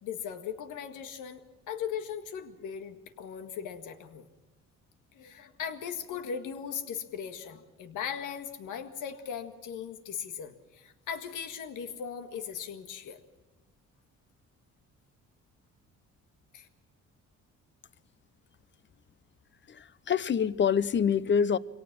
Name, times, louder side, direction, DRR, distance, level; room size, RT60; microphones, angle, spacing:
voice 1, 0.0-1.4 1.7-4.3 5.1-13.2 16.5-16.7, left 7 dB, 85° left, 1.9 m, -38 dB
voice 2, 19.7-21.6, left 7 dB, 40° left, 0.8 m, -26 dB
24.0 x 18.0 x 6.1 m
cardioid pair, 90°, 30 cm